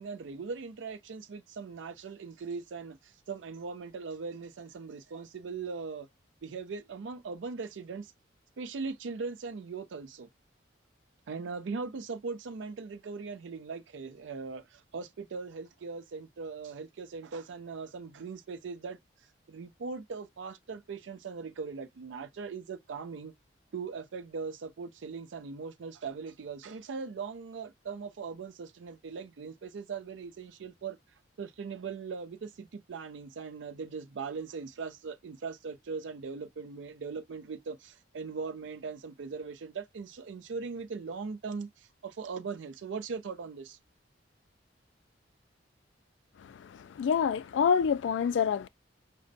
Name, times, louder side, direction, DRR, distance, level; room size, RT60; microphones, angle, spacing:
voice 1, 0.0-6.1 6.4-8.1 8.6-10.3 11.3-19.0 19.5-23.3 23.7-31.0 31.4-43.8, right 5 dB, 80° right, 0.4 m, -40 dB
voice 2, 46.4-48.7, left 7 dB, 75° left, 0.3 m, -27 dB
5.1 x 2.1 x 2.6 m
head